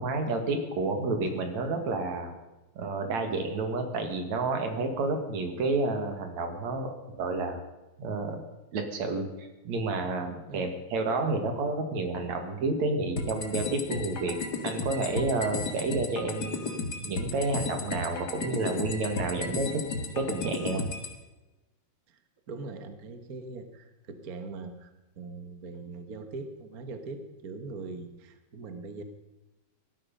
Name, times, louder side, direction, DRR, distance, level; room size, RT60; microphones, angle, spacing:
voice 1, 0.0-2.3 2.8-7.6 8.0-8.4 8.7-14.3 14.6-16.6 17.0-19.8 20.1-20.8, right 3 dB, 70° right, 5 dB, 3.3 m, -30 dB
sound 1, 13.2-21.1, left 3 dB, 40° left, 2.1 m, -34 dB
voice 2, 22.5-29.0, right 3 dB, 40° right, 8 dB, 1.4 m, -41 dB
18.0 x 12.5 x 5.4 m, 1.1 s
omnidirectional pair, 3.4 m